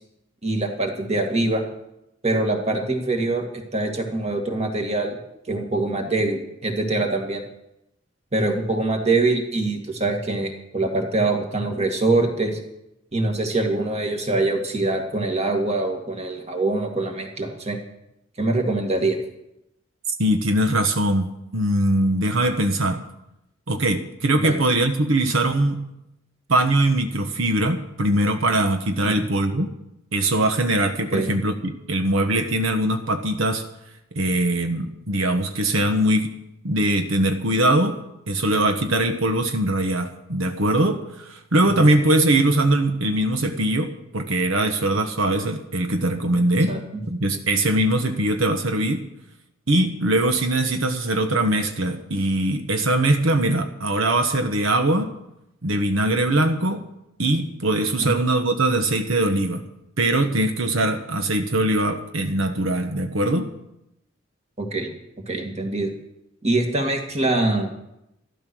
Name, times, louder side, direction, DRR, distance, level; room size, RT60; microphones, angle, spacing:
voice 1, 0.4-1.6 2.2-5.2 5.5-7.4 8.3-12.6 13.1-17.8 18.4-19.2 24.3-24.6 29.0-29.2 31.1-31.3 41.8-41.9 46.7-47.0 58.0-58.1 64.6-64.9 65.3-65.9 66.4-67.7, right 2 dB, 35° right, 3 dB, 2.2 m, -24 dB
voice 2, 20.2-23.0 23.7-25.8 26.5-29.7 30.1-33.6 34.1-36.3 36.6-38.0 38.3-46.8 47.1-49.1 49.7-55.1 55.6-56.8 57.2-59.7 60.0-63.5, right 1 dB, 80° right, 6 dB, 1.2 m, -21 dB
14.0 x 12.5 x 6.3 m, 0.86 s
head